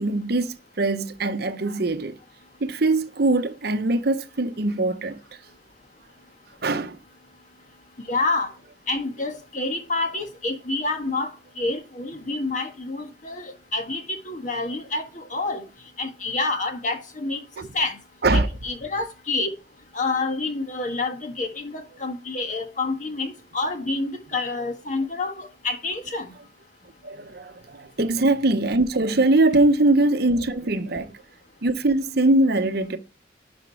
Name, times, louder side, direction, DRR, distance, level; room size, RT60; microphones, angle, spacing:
voice 1, 0.0-2.2 2.6-5.2 6.6-7.0 17.6-17.7 18.2-18.5 27.0-31.2 31.6-33.0, right 2 dB, 60° right, 0.8 m, -22 dB
voice 2, 8.1-8.5 8.9-11.3 11.6-15.6 16.0-17.4 17.7-18.0 18.3-19.5 19.9-26.3, left 3 dB, 45° left, 1.4 m, -28 dB
11.5 x 5.1 x 4.5 m
head